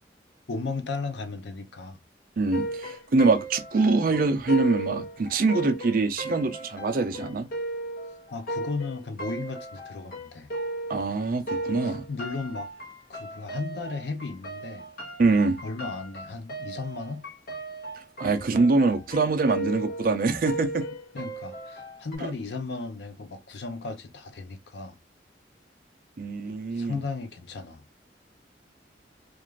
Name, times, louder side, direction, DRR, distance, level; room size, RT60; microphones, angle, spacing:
voice 1, 0.5-2.0 8.3-10.5 11.8-12.7 13.1-14.9 15.6-17.2 21.1-25.0 26.7-27.8, left 3 dB, 70° left, 0.6 m, -35 dB
voice 2, 2.4-7.5 10.9-12.0 15.2-15.6 18.2-20.9 26.2-27.0, right 3 dB, 50° right, 0.4 m, -24 dB
sound 1, 2.5-11.2 11.5-22.2, right 1 dB, 55° left, 1.0 m, -36 dB
2.4 x 2.4 x 3.1 m
head